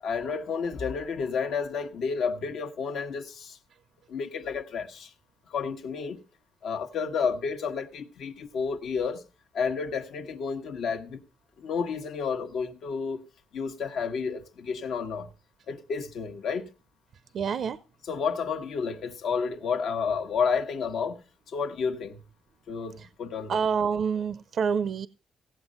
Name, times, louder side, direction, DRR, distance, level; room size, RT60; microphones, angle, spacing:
voice 1, 0.0-3.6 4.1-5.1 5.5-6.2 6.6-9.2 9.5-11.2 11.6-13.2 13.5-15.3 15.7-16.7 18.1-22.2 22.7-23.6, left 5 dB, 70° left, 1.2 m, -31 dB
voice 2, 17.3-17.8 23.0-23.1 23.5-25.1, right 6 dB, 60° right, 0.5 m, -27 dB
16.5 x 7.6 x 5.1 m
cardioid pair, 90°, 0 cm